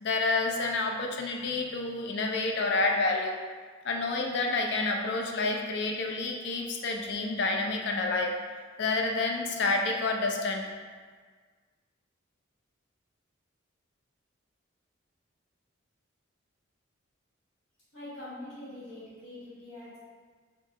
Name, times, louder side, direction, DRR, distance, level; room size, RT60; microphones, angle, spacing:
voice 1, 0.0-3.4 3.8-8.4 8.8-10.7, left 3 dB, 55° left, 2 dB, 0.4 m, -29 dB
voice 2, 17.9-20.0, left 1 dB, 80° left, -12 dB, 1.4 m, -44 dB
4.6 x 2.3 x 2.9 m, 1.5 s
head